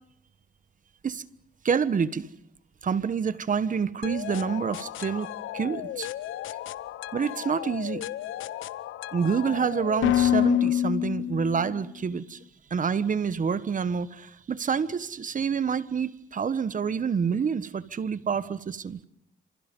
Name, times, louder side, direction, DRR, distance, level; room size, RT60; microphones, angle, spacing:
voice 1, 1.6-2.3 2.8-6.1 7.1-8.0 9.1-12.4 12.7-19.0, right 6 dB, 40° right, 1.4 m, -27 dB
sound 1, 4.0-11.8, left 12 dB, 80° left, 1.0 m, -29 dB
30.0 x 27.0 x 5.5 m
cardioid pair, 90°, 20 cm